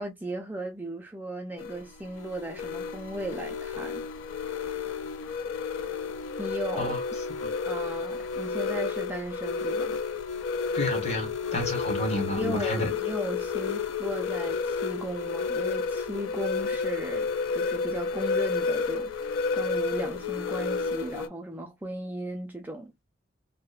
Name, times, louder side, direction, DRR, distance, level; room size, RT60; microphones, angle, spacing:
voice 1, 0.0-4.0 6.4-6.9 7.7-10.0 12.4-22.9, right 1 dB, 10° right, 0.3 m, -36 dB
sound 1, 1.6-21.3, left 5 dB, 80° left, 0.3 m, -31 dB
voice 2, 10.7-12.9, left 1 dB, 35° left, 0.8 m, -30 dB
2.8 x 2.1 x 2.2 m
head